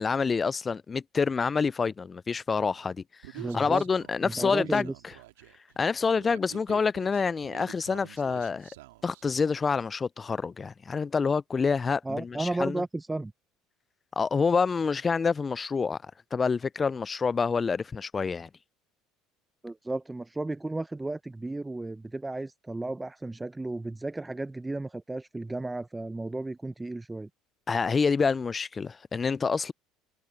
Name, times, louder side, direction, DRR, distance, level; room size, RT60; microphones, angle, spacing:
voice 1, 0.0-4.9 5.8-8.7 9.0-12.8 14.2-16.0 16.3-18.5 27.7-29.7, left 5 dB, 30° left, 0.3 m, -27 dB
Human voice, 3.2-9.2, right 18 dB, 80° right, 2.1 m, -48 dB
voice 2, 3.4-3.8 4.2-4.9 12.0-13.3 19.6-27.3, right 2 dB, 15° right, 0.8 m, -34 dB
hypercardioid pair, 75°, 0 cm